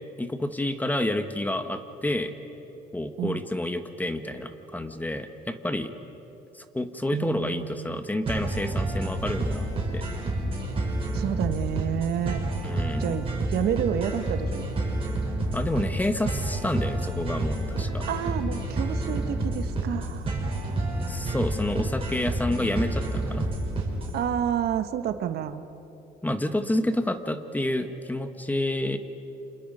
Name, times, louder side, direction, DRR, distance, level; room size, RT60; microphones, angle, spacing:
voice 1, 0.2-2.3 2.9-5.9 6.5-10.0 12.6-13.1 15.5-18.0 21.1-23.5 26.2-29.0, left 1 dB, 10° left, 8 dB, 1.5 m, -29 dB
voice 2, 7.1-8.1 11.1-12.4 13.0-14.7 18.1-20.3 24.1-25.6, right 9 dB, 70° right, 9 dB, 1.3 m, -29 dB
sound 1, 8.3-24.2, right 2 dB, 35° right, 5.7 m, -29 dB
30.0 x 27.5 x 5.6 m, 3.0 s
cardioid pair, 110°, 17 cm